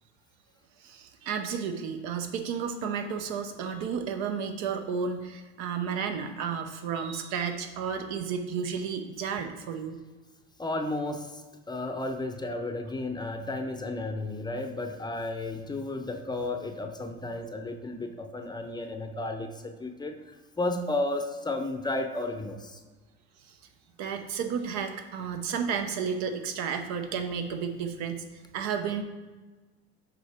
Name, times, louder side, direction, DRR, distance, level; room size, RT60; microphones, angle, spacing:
voice 1, 0.8-10.0 23.5-23.6 24.0-28.2 28.5-29.0, right 6 dB, 70° right, 6 dB, 0.8 m, -32 dB
voice 2, 10.6-22.8, left 2 dB, 15° left, 5 dB, 0.6 m, -33 dB
7.0 x 3.9 x 3.5 m, 1.3 s
supercardioid pair, 105°, 29 cm